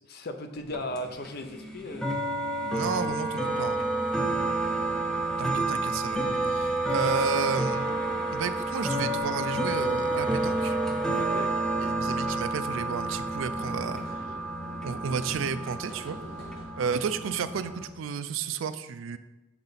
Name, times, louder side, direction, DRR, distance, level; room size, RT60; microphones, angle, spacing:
voice 1, 0.1-2.1 7.0-7.1 11.2-11.5, left 1 dB, 55° left, 7 dB, 0.6 m, -36 dB
sound 1, 0.6-17.9, right 2 dB, 5° left, 0.6 m, -30 dB
voice 2, 2.7-3.8 5.4-7.9 8.3-10.8 11.7-14.3 14.8-16.2 16.8-19.2, right 6 dB, 85° right, 12 dB, 0.4 m, -32 dB
sound 2, 4.6-16.6, equal, 70° left, 2.1 m, -50 dB
sound 3, 10.1-12.8, right 5 dB, 35° right, 0.5 m, -40 dB
7.3 x 3.9 x 4.0 m, 1.1 s
head